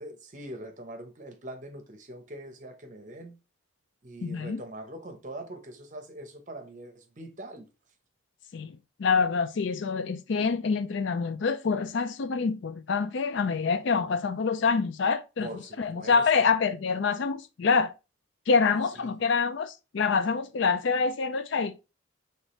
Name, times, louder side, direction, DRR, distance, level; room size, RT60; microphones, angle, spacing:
voice 1, 0.0-3.4 4.0-7.7 15.4-16.5 19.0-19.2, right 1 dB, 35° right, 0.8 m, -43 dB
voice 2, 4.2-4.6 8.5-15.5 15.8-17.9 18.5-21.8, left 5 dB, 60° left, 0.4 m, -26 dB
4.9 x 3.2 x 3.0 m
head